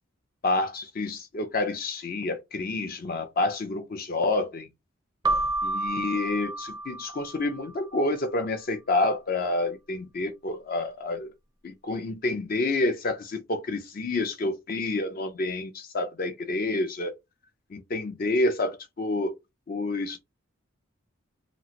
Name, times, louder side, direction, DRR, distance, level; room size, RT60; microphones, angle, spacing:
voice 1, 0.4-4.7 5.6-11.3 11.6-17.1 17.7-19.3 19.7-20.2, left 2 dB, 45° left, 0.5 m, -28 dB
Keyboard (musical), 5.2-7.8, right 2 dB, 20° right, 0.4 m, -30 dB
2.9 x 2.4 x 2.8 m
head